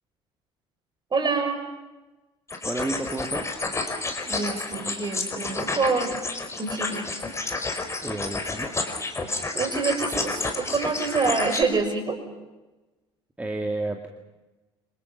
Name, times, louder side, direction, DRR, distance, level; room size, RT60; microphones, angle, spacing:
voice 1, 1.1-1.6 4.3-6.2 6.6-7.1 9.5-12.2, right 4 dB, 30° right, 6 dB, 6.4 m, -26 dB
sound 1, 2.5-11.6, left 3 dB, 20° left, 4.8 m, -30 dB
voice 2, 2.6-3.5 8.0-8.7 13.4-14.1, right 2 dB, 10° right, 4 dB, 2.4 m, -31 dB
29.0 x 26.0 x 6.0 m, 1.1 s
figure-of-eight pair, 55°, 14 cm